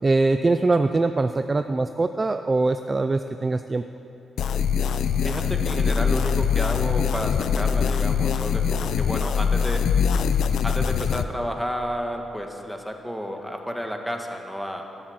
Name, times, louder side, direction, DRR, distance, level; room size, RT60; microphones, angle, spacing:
voice 1, 0.0-3.8, right 3 dB, 20° right, 8 dB, 0.4 m, -22 dB
sound 1, 4.4-11.2, left 6 dB, 70° left, 0.6 m, -23 dB
voice 2, 5.2-9.8 10.6-14.8, equal, ahead, 3 dB, 1.4 m, -31 dB
14.0 x 13.0 x 7.9 m, 2.9 s
wide cardioid pair, 155°, 0 cm